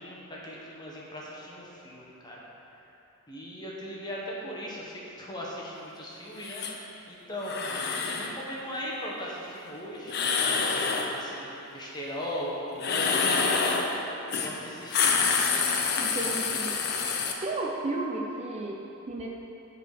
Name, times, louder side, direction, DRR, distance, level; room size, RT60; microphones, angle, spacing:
voice 1, 0.0-2.5 3.3-6.6 7.1-7.5 8.0-13.4 14.4-15.3, equal, 20° left, -5 dB, 1.2 m, -38 dB
sound 1, 6.4-6.7 7.4-8.3 10.1-11.1 12.8-13.9 14.3-14.5 14.8-17.3, left 5 dB, 50° left, 0.7 m, -27 dB
voice 2, 16.0-16.8 17.4-19.3, right 2 dB, 30° right, -1 dB, 0.5 m, -33 dB
7.9 x 4.2 x 6.5 m, 2.9 s
head